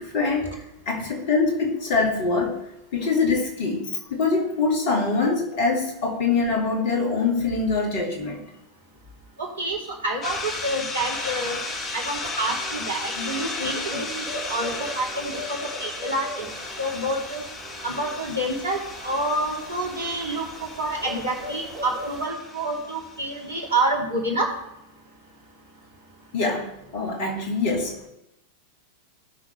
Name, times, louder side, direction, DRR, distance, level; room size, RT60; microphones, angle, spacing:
voice 1, 0.0-2.7 2.9-8.4 26.3-28.0, left 4 dB, 45° left, 1 dB, 2.3 m, -24 dB
voice 2, 9.4-9.8 10.0-11.6 11.9-16.5 16.8-17.4 17.8-24.5, right 1 dB, 65° right, -1 dB, 2.9 m, -28 dB
sound 1, 10.2-23.6, left 3 dB, 30° left, 1.6 m, -35 dB
sound 2, 10.2-22.3, right 1 dB, 40° right, 1.9 m, -40 dB
17.5 x 6.1 x 3.4 m, 0.82 s
figure-of-eight pair, 90°, 0 cm